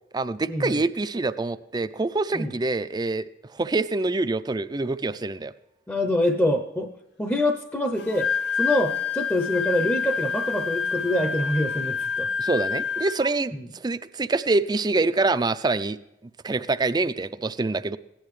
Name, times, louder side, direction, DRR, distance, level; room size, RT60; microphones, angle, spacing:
voice 1, 0.1-3.2 3.5-5.5 12.4-16.0 16.4-18.0, right 3 dB, 25° right, 12 dB, 0.4 m, -25 dB
voice 2, 5.9-6.9 7.2-8.3 8.6-12.3 13.5-13.6, left 1 dB, 10° left, 5 dB, 0.7 m, -25 dB
Wind instrument woodwind instrument, 8.0-13.3, left 6 dB, 65° left, 0.7 m, -28 dB
16.5 x 10.5 x 3.2 m, 0.90 s
head